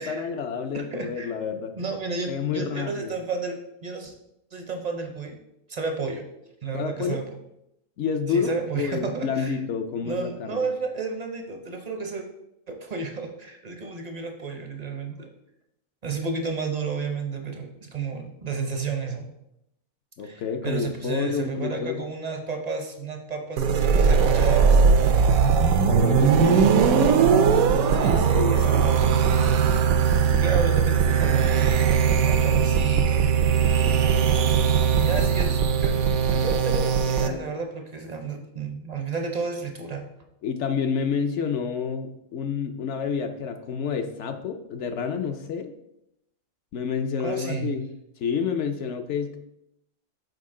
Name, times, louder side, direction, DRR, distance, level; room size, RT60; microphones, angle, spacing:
voice 1, 0.0-1.8 2.3-3.2 6.7-7.2 8.0-10.7 20.2-22.0 25.9-26.6 27.7-29.1 40.4-45.7 46.7-47.9 48.2-49.4, left 6 dB, 65° left, 7 dB, 0.8 m, -29 dB
voice 2, 0.7-1.3 1.7-4.1 4.5-5.4 5.7-6.3 6.6-7.2 8.3-9.6 10.0-12.2 12.7-15.3 16.0-19.3 20.2-24.8 27.9-29.8 30.4-33.3 34.9-36.0 36.3-40.0 47.2-47.8, right 4 dB, 45° right, 4 dB, 0.6 m, -32 dB
sound 1, 23.6-37.3, right 6 dB, 80° right, 1.0 m, -20 dB
6.4 x 4.7 x 3.7 m, 0.81 s
omnidirectional pair, 1.5 m